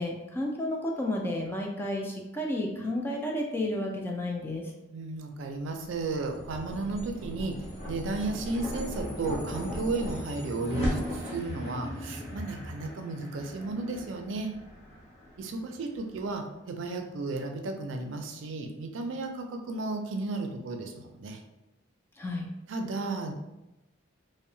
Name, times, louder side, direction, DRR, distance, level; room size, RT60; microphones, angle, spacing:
voice 1, 0.0-4.6 22.2-22.5, left 1 dB, 10° left, 0 dB, 0.3 m, -31 dB
voice 2, 4.9-14.6 15.4-21.4 22.7-23.3, right 3 dB, 80° right, 4 dB, 0.4 m, -34 dB
sound 1, 5.8-16.3, equal, 35° left, 0.7 m, -37 dB
2.7 x 2.0 x 2.6 m, 0.97 s
head